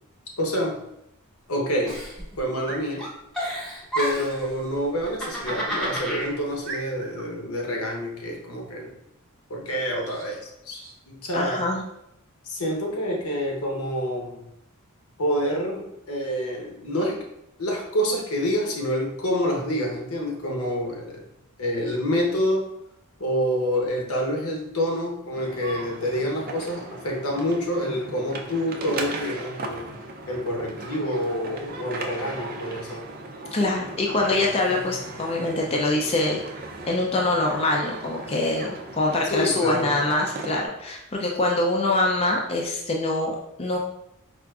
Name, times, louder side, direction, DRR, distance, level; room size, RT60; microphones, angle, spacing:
voice 1, 0.4-0.8 1.5-2.0 2.4-3.1 3.9-8.9 9.5-10.8 11.1-11.7 12.4-14.4 15.2-17.2 17.6-21.2 21.6-22.7 23.2-29.9 30.3-33.1 39.3-39.9, equal, 80° left, 0 dB, 0.9 m, -27 dB
Giggle, 1.9-2.7 3.0-4.5 5.0-6.3, right 1 dB, 5° left, 0.8 m, -30 dB
sound 1, 2.4-2.9 5.4-5.6 6.1-6.2 6.6-7.3 10.0-10.3 10.7-11.0, right 3 dB, 65° right, 0.7 m, -39 dB
voice 2, 11.3-11.8 33.5-36.4 36.9-43.8, left 2 dB, 25° left, -1 dB, 0.3 m, -24 dB
sound 2, 25.3-40.7, right 2 dB, 40° right, 0.4 m, -37 dB
4.6 x 2.5 x 2.3 m, 0.81 s
head